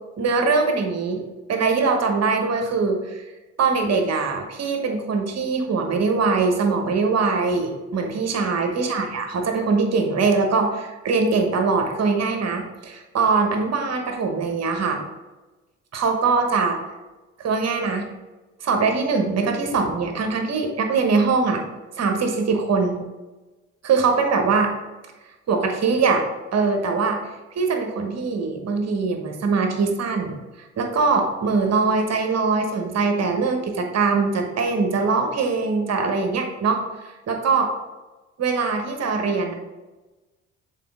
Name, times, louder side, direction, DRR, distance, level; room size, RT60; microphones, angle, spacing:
voice 1, 0.2-1.2 1.5-3.2 3.6-15.0 15.9-16.8 17.4-18.1 18.6-21.6 22.0-23.0 23.8-24.7 25.5-27.2 27.5-30.4 30.8-37.7 38.4-39.5, right 4 dB, 45° right, 4 dB, 1.3 m, -22 dB
7.4 x 4.2 x 3.7 m, 1.1 s
figure-of-eight pair, 45°, 35 cm